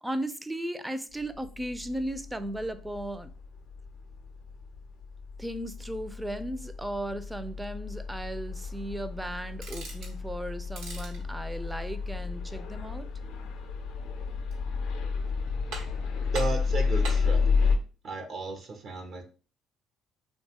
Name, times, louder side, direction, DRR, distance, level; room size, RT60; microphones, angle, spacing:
voice 1, 0.0-3.3 5.4-13.1, right 1 dB, 10° right, 0.4 m, -36 dB
sound 1, 1.2-17.8, left 5 dB, 75° left, 0.5 m, -32 dB
sound 2, 9.5-10.2 10.6-11.2 14.2-14.8 15.2-15.3 15.7-16.1 16.3-17.3, right 2 dB, 80° right, 1.0 m, -41 dB
voice 2, 16.3-17.8 18.0-19.2, right 3 dB, 60° right, 0.6 m, -35 dB
2.9 x 2.3 x 2.8 m
hypercardioid pair, 60°, 0 cm